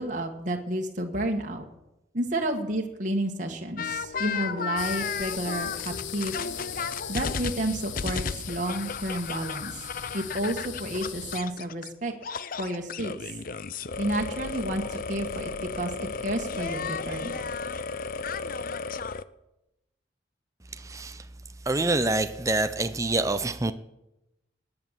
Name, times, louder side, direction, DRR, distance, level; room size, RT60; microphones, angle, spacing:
voice 1, 0.0-1.6 2.1-6.3 7.1-9.7 10.1-12.1 12.6-13.1 14.0-17.4, right 1 dB, 40° right, 1 dB, 1.7 m, -31 dB
sound 1, 3.8-11.9 12.2-19.2, left 5 dB, 45° left, 0.6 m, -34 dB
sound 2, 4.8-11.4, left 9 dB, 75° left, 1.2 m, -39 dB
voice 2, 20.7-21.2 21.7-23.7, right 2 dB, 15° right, 9 dB, 0.6 m, -26 dB
19.5 x 9.7 x 7.5 m, 0.92 s
head